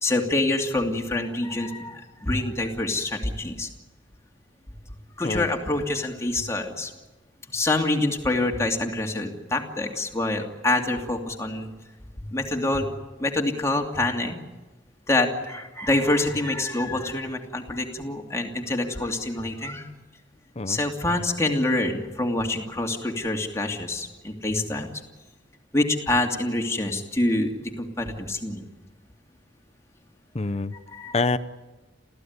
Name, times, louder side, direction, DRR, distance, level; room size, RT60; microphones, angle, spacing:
voice 1, 0.0-3.7 5.2-6.9 7.5-11.7 12.2-12.9 13.2-14.4 15.1-19.9 20.7-24.9 25.7-28.6 30.9-31.2, left 2 dB, 15° left, 2 dB, 2.7 m, -26 dB
voice 2, 30.3-30.7 31.1-31.4, left 3 dB, 35° left, 13 dB, 0.7 m, -25 dB
28.0 x 16.0 x 9.7 m, 1.2 s
head